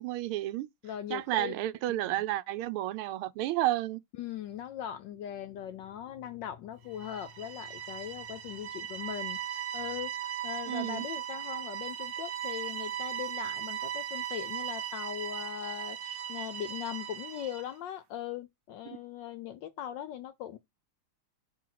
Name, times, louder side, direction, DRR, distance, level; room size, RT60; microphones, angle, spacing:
voice 1, 0.0-0.7 1.1-4.0 10.7-11.1 18.9-19.0, right 15 dB, 80° right, 1.4 m, -31 dB
voice 2, 0.8-1.5 1.9-2.2 4.2-20.6, left 10 dB, 70° left, 1.1 m, -40 dB
sound 1, 6.9-17.7, right 10 dB, 65° right, 1.0 m, -38 dB
4.8 x 3.8 x 5.7 m
omnidirectional pair, 2.4 m